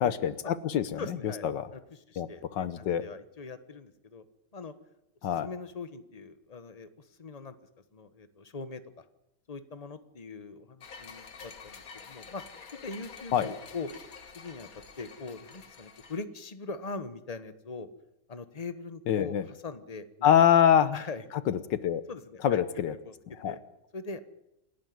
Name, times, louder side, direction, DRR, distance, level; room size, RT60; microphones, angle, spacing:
voice 1, 0.0-1.2 1.4-1.7 2.2-3.0 5.2-5.5 13.3-13.5 19.1-19.4 20.2-21.0 21.5-22.0 22.4-22.9 23.4-23.6, left 9 dB, 75° left, 14 dB, 1.6 m, -25 dB
voice 2, 1.0-1.4 1.7-4.2 4.5-4.7 5.4-7.5 7.9-9.0 9.5-12.4 12.8-13.9 14.3-14.7 15.0-17.9 18.3-20.4 20.9-21.2 22.1-22.6 22.9-23.1 23.4-23.6 23.9-24.2, left 4 dB, 25° left, 11 dB, 1.1 m, -41 dB
sound 1, 10.8-16.2, left 5 dB, 55° left, 1.8 m, -48 dB
28.0 x 11.0 x 9.5 m, 0.87 s
omnidirectional pair, 2.0 m